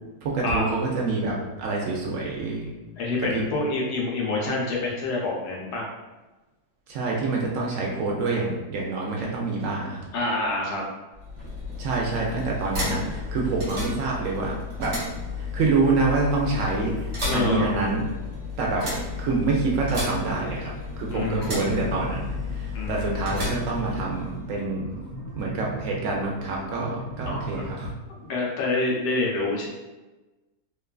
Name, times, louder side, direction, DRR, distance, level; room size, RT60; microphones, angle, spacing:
voice 1, 0.2-2.7 3.3-3.4 6.9-10.0 11.8-15.0 15.4-18.0 18.6-18.9 19.2-25.0 25.4-27.9, right 3 dB, 70° right, -2 dB, 0.8 m, -27 dB
voice 2, 3.0-5.9 10.1-10.8 17.2-17.9 21.1-22.1 22.7-23.5 27.2-27.6 28.1-29.7, left 2 dB, 90° left, -2 dB, 1.3 m, -27 dB
sound 1, 11.1-24.4, left 3 dB, 50° right, 1.1 m, -33 dB
sound 2, 20.0-27.7, right 2 dB, 65° left, 1.2 m, -38 dB
3.0 x 2.2 x 2.3 m, 1.1 s
omnidirectional pair, 1.7 m